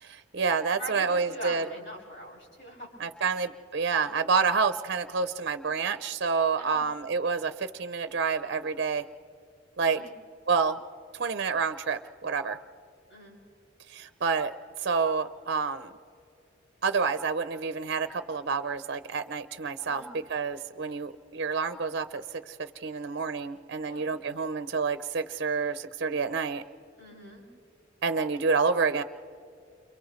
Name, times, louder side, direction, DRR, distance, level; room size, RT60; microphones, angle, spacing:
voice 1, 0.0-1.7 3.0-9.0 9.8-10.0 10.5-10.8 11.1-12.6 13.9-14.5 14.8-15.9 16.8-26.6 28.0-29.0, right 5 dB, 55° right, 11 dB, 0.6 m, -28 dB
voice 2, 0.8-3.0 6.6-6.9 9.8-10.1 13.1-13.4 19.8-20.1 23.8-24.1 27.0-27.5, equal, 60° left, -4 dB, 6.7 m, -42 dB
30.0 x 28.0 x 3.2 m, 2.6 s
head